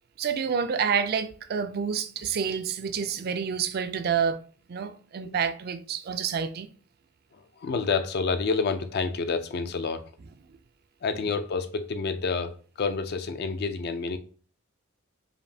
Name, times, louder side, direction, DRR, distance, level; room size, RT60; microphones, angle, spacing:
voice 1, 0.2-4.4 4.7-6.7, right 7 dB, 45° right, 0.3 m, -28 dB
voice 2, 7.3-10.1 11.0-12.5 12.8-14.2, left 4 dB, 50° left, 0.4 m, -28 dB
5.0 x 2.6 x 2.7 m
head